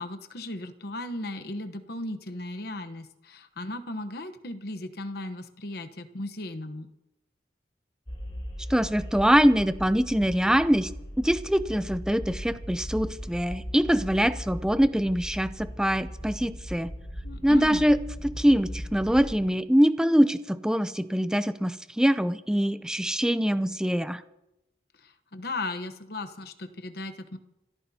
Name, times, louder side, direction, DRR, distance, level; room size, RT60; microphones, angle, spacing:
voice 1, 0.0-6.9 17.2-17.8 24.9-27.4, left 2 dB, 60° left, 9 dB, 1.0 m, -36 dB
sound 1, 8.1-19.4, equal, 35° left, 2.7 m, -39 dB
voice 2, 8.7-10.9 11.2-16.9 17.4-18.0 18.2-24.2, equal, 5° right, 13 dB, 0.5 m, -23 dB
27.0 x 13.5 x 2.8 m, 0.91 s
head